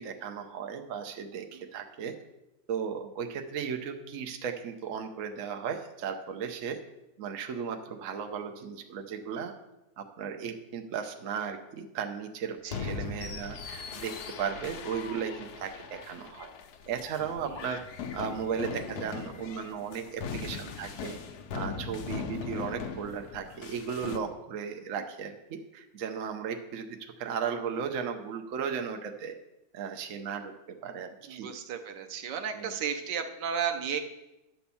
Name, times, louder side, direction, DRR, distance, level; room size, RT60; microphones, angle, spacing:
voice 1, 0.0-2.1 2.7-6.8 7.2-9.5 10.0-12.6 12.8-16.5 16.9-17.8 18.1-21.2 21.5-29.3 29.7-30.5 30.8-31.5 32.5-32.7, right 7 dB, 55° right, 5 dB, 1.0 m, -36 dB
sound 1, 12.7-24.2, left 6 dB, 70° left, 1.2 m, -39 dB
voice 2, 31.3-34.0, right 7 dB, 85° right, 6 dB, 1.4 m, -34 dB
10.5 x 4.4 x 6.9 m, 0.96 s
omnidirectional pair, 1.8 m